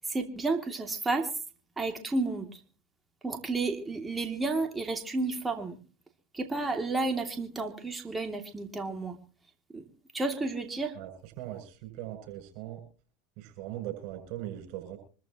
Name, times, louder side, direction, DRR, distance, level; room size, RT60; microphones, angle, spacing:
voice 1, 0.1-1.3 1.8-2.6 3.2-5.8 6.3-9.2 9.7-9.9 10.1-10.9, right 3 dB, 15° right, 4 dB, 2.7 m, -31 dB
voice 2, 10.9-12.8 13.4-15.0, right 13 dB, 60° right, 5 dB, 7.7 m, -40 dB
25.5 x 14.0 x 3.0 m, 0.37 s
hypercardioid pair, 90°, 0 cm